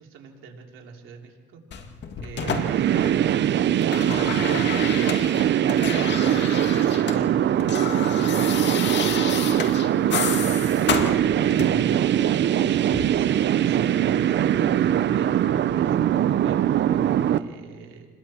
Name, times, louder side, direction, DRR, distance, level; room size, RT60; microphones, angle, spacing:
voice 1, 0.0-1.6 2.2-3.2 3.6-4.7 6.3-9.5 10.0-11.9 12.6-16.8 17.3-18.1, right 6 dB, 85° right, 0 dB, 3.2 m, -43 dB
sound 1, 1.7-3.4 3.7-7.2 7.5-11.9 12.9-13.1, left 6 dB, 60° left, 2.0 m, -30 dB
sound 2, 2.4-17.4, right 10 dB, 65° right, 0.7 m, -22 dB
29.0 x 21.5 x 4.4 m, 1.5 s
cardioid pair, 90°, 20 cm